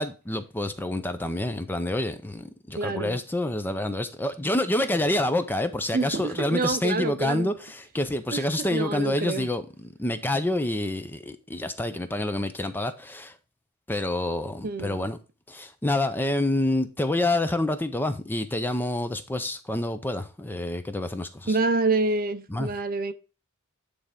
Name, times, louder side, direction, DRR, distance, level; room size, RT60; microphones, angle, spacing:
voice 1, 0.0-13.4 13.9-15.2 15.5-21.6 22.5-22.7, left 1 dB, 10° left, 0.4 m, -27 dB
voice 2, 2.7-3.2 5.9-7.5 8.3-9.5 14.6-15.1 21.5-23.1, right 3 dB, 40° right, 0.6 m, -27 dB
9.6 x 3.4 x 5.0 m
head